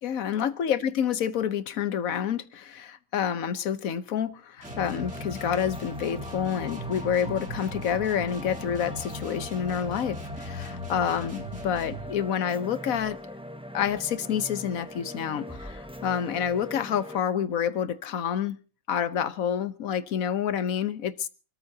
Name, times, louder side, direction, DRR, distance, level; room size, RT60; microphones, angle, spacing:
voice 1, 0.0-13.4 13.7-18.6 18.9-21.3, left 8 dB, 80° left, 13 dB, 1.3 m, -28 dB
sound 1, 4.6-17.2, equal, 5° right, 0.7 m, -41 dB
sound 2, 4.6-12.1, left 1 dB, 65° right, 3.4 m, -39 dB
28.0 x 13.5 x 2.8 m, 0.36 s
omnidirectional pair, 1.4 m